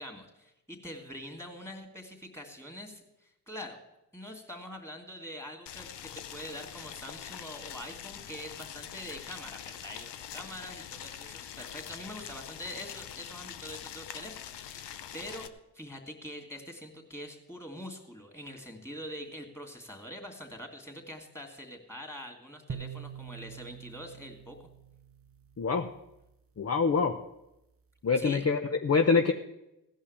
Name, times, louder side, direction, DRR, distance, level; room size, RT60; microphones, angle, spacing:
voice 1, 0.0-3.8 4.1-15.5 15.7-24.6 28.2-28.4, equal, 5° left, 3 dB, 3.0 m, -44 dB
Boiling, 5.7-15.5, left 10 dB, 80° left, 0.8 m, -44 dB
sound 1, 22.7-26.0, right 7 dB, 35° right, 0.7 m, -44 dB
voice 2, 25.6-25.9 26.6-27.2 28.0-29.3, left 5 dB, 35° left, 6 dB, 0.8 m, -25 dB
16.5 x 5.6 x 8.4 m, 0.90 s
supercardioid pair, 50°, 41 cm